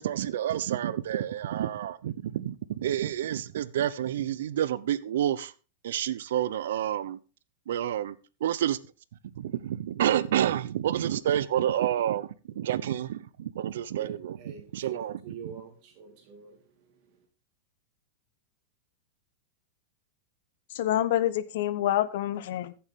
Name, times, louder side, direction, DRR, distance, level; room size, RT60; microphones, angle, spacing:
voice 1, 0.0-5.5 5.8-7.2 7.7-8.2 8.4-8.8 9.4-12.3 12.5-14.4 14.7-15.4, right 11 dB, 80° right, 0.7 m, -29 dB
voice 2, 14.0-17.2, right 6 dB, 45° right, 2.6 m, -46 dB
voice 3, 20.7-22.7, left 12 dB, 65° left, 0.9 m, -27 dB
14.5 x 7.1 x 3.7 m
supercardioid pair, 145°, 0 cm